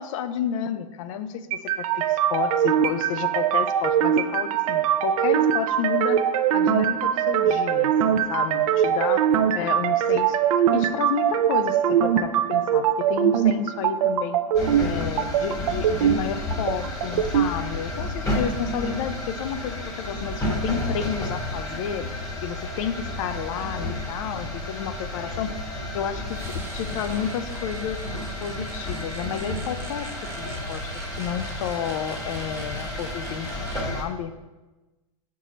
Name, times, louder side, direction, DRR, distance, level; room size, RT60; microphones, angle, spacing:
voice 1, 0.0-6.2 6.5-10.4 10.7-14.4 14.8-22.1 22.4-25.5 25.9-28.0 28.4-33.5 33.9-34.3, left 8 dB, 65° left, 11 dB, 0.5 m, -31 dB
sound 1, 1.5-17.5, right 9 dB, 70° right, 0.5 m, -22 dB
sound 2, 14.5-34.0, left 1 dB, 20° left, 1.0 m, -31 dB
sound 3, 26.3-33.8, right 3 dB, 15° right, 0.8 m, -43 dB
6.0 x 4.7 x 3.9 m, 1.1 s
supercardioid pair, 135°, 18 cm